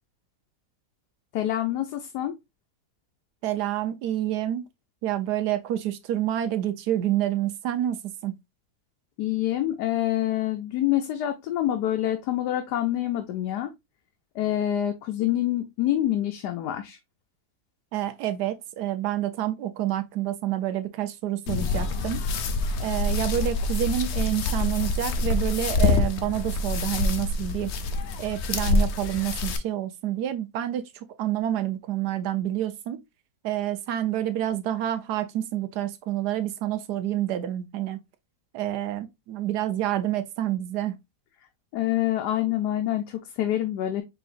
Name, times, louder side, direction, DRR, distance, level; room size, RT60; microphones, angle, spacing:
voice 1, 1.3-2.3 9.2-13.7 14.3-17.0 41.7-44.0, left 13 dB, 85° left, 1.2 m, -26 dB
voice 2, 3.4-4.7 5.0-8.4 17.9-22.2 22.8-27.7 28.2-33.0 33.4-38.0 38.5-41.0, right 12 dB, 80° right, 1.2 m, -28 dB
sound 1, 21.5-29.6, left 3 dB, 60° left, 0.7 m, -26 dB
4.8 x 3.8 x 2.5 m
omnidirectional pair, 1.7 m